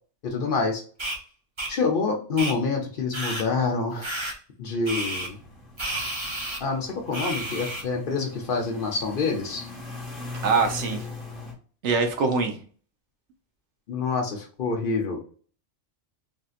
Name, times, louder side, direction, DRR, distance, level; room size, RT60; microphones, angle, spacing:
voice 1, 0.2-0.8 1.7-4.2 4.6-5.4 6.6-9.6 13.9-15.2, left 4 dB, 55° left, 2 dB, 0.7 m, -27 dB
sound 1, 1.0-1.2 1.6-1.7 2.4-2.5 3.1-3.4 4.0-4.3 4.9-5.3 5.8-6.6 7.1-7.8, right 1 dB, 30° right, 0.6 m, -31 dB
sound 2, 5.0-11.5, left 3 dB, ahead, 1.1 m, -40 dB
voice 2, 10.4-11.1 11.8-12.6, right 4 dB, 75° right, 6 dB, 0.9 m, -23 dB
3.4 x 2.7 x 2.4 m, 0.42 s
omnidirectional pair, 1.2 m